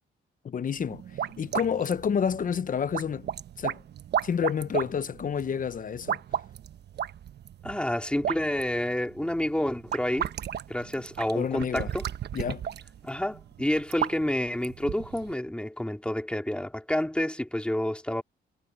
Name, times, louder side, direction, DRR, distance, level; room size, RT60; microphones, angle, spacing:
voice 1, 0.4-1.0 1.4-3.3 3.6-3.8 4.2-6.2 11.3-11.9 12.3-12.6, left 7 dB, 45° left, 0.9 m, -29 dB
sound 1, 0.8-15.3, right 9 dB, 60° right, 1.0 m, -35 dB
voice 2, 7.6-10.3 10.7-12.0 13.0-18.2, left 1 dB, 5° left, 3.9 m, -29 dB
cardioid pair, 90°, 20 cm